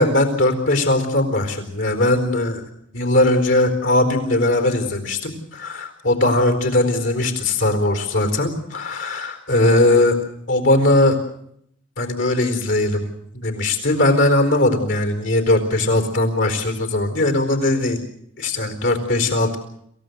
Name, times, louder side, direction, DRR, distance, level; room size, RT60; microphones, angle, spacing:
voice 1, 0.0-2.6 2.9-10.2 10.5-11.2 12.0-18.0 18.4-19.6, left 1 dB, 70° left, 6 dB, 4.4 m, -19 dB
27.0 x 16.0 x 8.1 m, 0.71 s
head